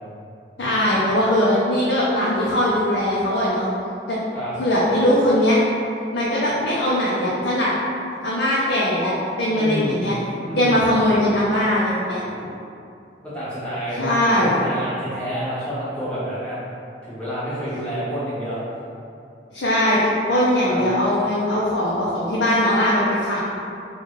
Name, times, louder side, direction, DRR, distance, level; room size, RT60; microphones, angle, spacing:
voice 1, 0.6-3.7 4.1-4.2 4.6-5.6 6.1-7.7 8.2-10.2 10.6-12.2 14.0-14.5 19.5-23.4, left 1 dB, 65° left, -7 dB, 0.5 m, -20 dB
voice 2, 9.5-10.0 10.3-10.8 12.2-12.5 13.2-14.0 14.4-16.6 17.0-18.6 20.6-20.8, equal, 5° left, -11 dB, 1.0 m, -29 dB
3.1 x 2.3 x 3.6 m, 2.6 s
head